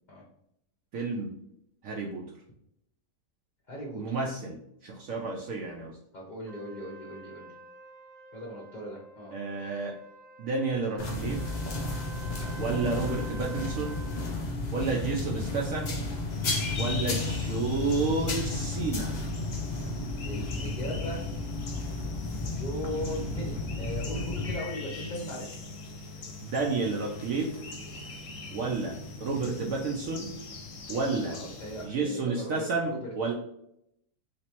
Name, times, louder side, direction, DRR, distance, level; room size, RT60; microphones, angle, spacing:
voice 1, 0.9-1.4 1.8-2.4 3.9-6.0 9.3-10.0 10.4-11.5 12.6-14.2 14.7-16.0 16.8-19.2 26.4-27.6 28.5-30.3 30.9-31.4 31.8-33.3, right 3 dB, 65° right, -1 dB, 0.9 m, -31 dB
voice 2, 3.7-4.0 6.1-7.5 8.3-9.3 20.2-21.2 22.6-25.6 31.3-33.0, equal, 40° left, -3 dB, 0.7 m, -38 dB
Trumpet, 6.5-14.3, right 2 dB, 45° right, 0.5 m, -48 dB
sound 1, 11.0-24.5, left 2 dB, 85° left, 0.3 m, -33 dB
sound 2, 16.3-31.9, left 5 dB, 60° left, 0.9 m, -39 dB
3.3 x 3.0 x 2.9 m, 0.76 s
omnidirectional pair, 1.7 m